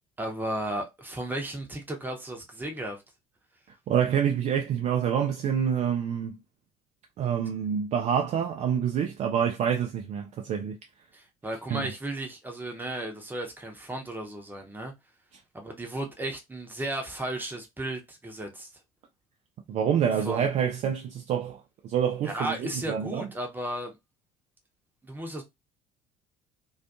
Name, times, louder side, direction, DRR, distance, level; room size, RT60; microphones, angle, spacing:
voice 1, 0.2-3.0 11.1-14.9 15.5-18.7 20.2-20.5 22.2-24.0 25.0-25.4, right 1 dB, 10° right, 0.8 m, -34 dB
voice 2, 3.9-6.4 7.2-10.8 11.7-11.9 19.7-23.3, right 8 dB, 35° right, 0.4 m, -27 dB
2.4 x 2.3 x 2.6 m
figure-of-eight pair, 55°, 20 cm